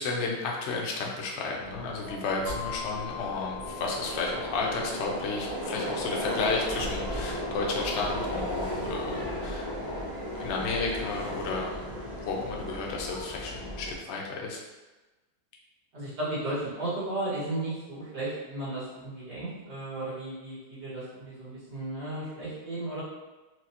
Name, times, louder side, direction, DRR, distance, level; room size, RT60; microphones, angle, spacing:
voice 1, 0.0-9.7 10.3-11.9 12.2-14.6, left 3 dB, 80° left, -1 dB, 0.6 m, -32 dB
Subway metro underground, 1.6-13.9, equal, 25° right, 0.5 m, -35 dB
sound 1, 2.5-10.3, left 5 dB, 60° right, 2.0 m, -44 dB
voice 2, 15.9-23.0, right 2 dB, 75° right, -11 dB, 2.2 m, -34 dB
4.5 x 2.2 x 2.8 m, 1.1 s
omnidirectional pair, 1.9 m